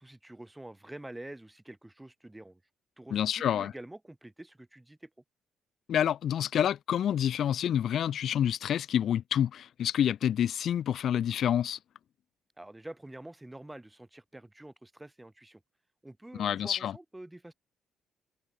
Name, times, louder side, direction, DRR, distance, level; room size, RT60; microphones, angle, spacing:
voice 1, 0.0-2.6 3.0-5.1 12.6-15.6 16.0-17.5, right 1 dB, 10° right, 1.8 m, -47 dB
voice 2, 3.1-3.7 5.9-11.8 16.4-16.9, left 10 dB, 65° left, 0.4 m, -28 dB
cardioid pair, 90°, 0 cm